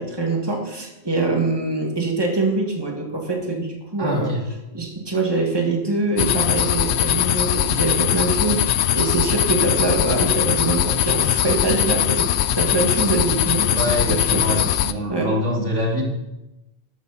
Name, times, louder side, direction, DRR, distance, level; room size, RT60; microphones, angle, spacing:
voice 1, 0.0-4.3 4.7-14.6 15.1-15.4, right 3 dB, 20° right, 1 dB, 2.1 m, -24 dB
voice 2, 4.0-4.4 13.7-16.0, left 1 dB, 85° right, -1 dB, 3.0 m, -24 dB
sound 1, 6.2-14.9, left 11 dB, 75° left, 0.8 m, -21 dB
12.5 x 12.5 x 4.2 m, 0.96 s
omnidirectional pair, 1.2 m